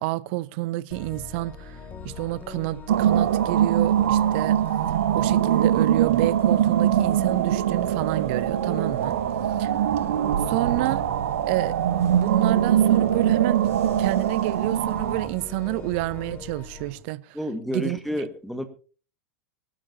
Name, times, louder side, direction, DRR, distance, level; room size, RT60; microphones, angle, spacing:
voice 1, 0.0-4.6 5.1-9.2 9.6-9.7 10.5-11.0 11.5-11.7 12.1-17.4 17.7-18.0, right 20 dB, 50° right, 0.7 m, -29 dB
sound 1, 0.9-16.9, left 4 dB, 25° left, 2.6 m, -41 dB
sound 2, 2.9-15.3, right 10 dB, 65° right, 1.1 m, -22 dB
Bus / Engine, 9.0-17.0, left 2 dB, 65° left, 4.9 m, -48 dB
voice 2, 17.3-18.6, equal, ahead, 1.7 m, -30 dB
23.5 x 12.0 x 2.8 m
figure-of-eight pair, 95°, 8 cm